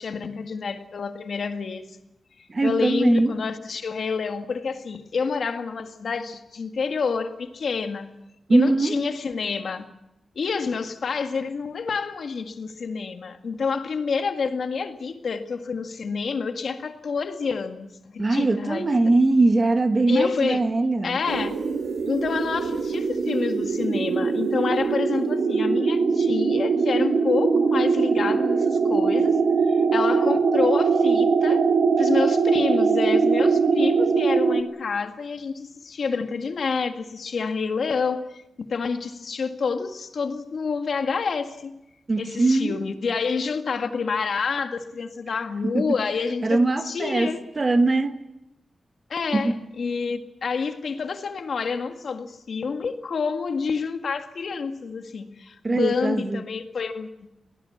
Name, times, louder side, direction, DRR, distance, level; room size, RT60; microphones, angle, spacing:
voice 1, 0.0-1.9 2.4-8.1 8.5-9.8 10.4-18.9 20.1-20.6 21.0-21.6 22.1-31.7 32.0-38.4 38.7-41.7 42.2-46.6 46.8-47.4 49.1-57.1, left 5 dB, 60° left, 1.9 m, -28 dB
voice 2, 2.5-3.4 8.5-9.0 18.2-21.2 42.1-42.8 45.6-45.9 46.4-47.3 47.6-48.2 49.3-49.6 55.6-56.4, right 2 dB, 25° right, 1.4 m, -21 dB
sound 1, 21.3-34.6, right 5 dB, 70° right, 2.0 m, -22 dB
24.0 x 18.0 x 8.5 m
wide cardioid pair, 180°, 0 cm